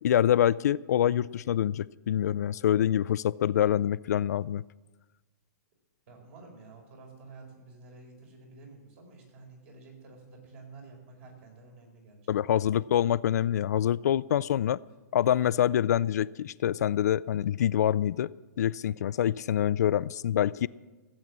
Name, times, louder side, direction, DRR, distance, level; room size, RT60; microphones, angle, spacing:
voice 1, 0.0-4.6 12.3-14.8 15.1-18.3 18.6-20.7, left 10 dB, 70° left, 18 dB, 0.4 m, -26 dB
voice 2, 6.1-12.7, right 3 dB, 50° right, 2 dB, 4.8 m, -51 dB
15.5 x 8.2 x 7.4 m, 1.2 s
hypercardioid pair, 140°, 9 cm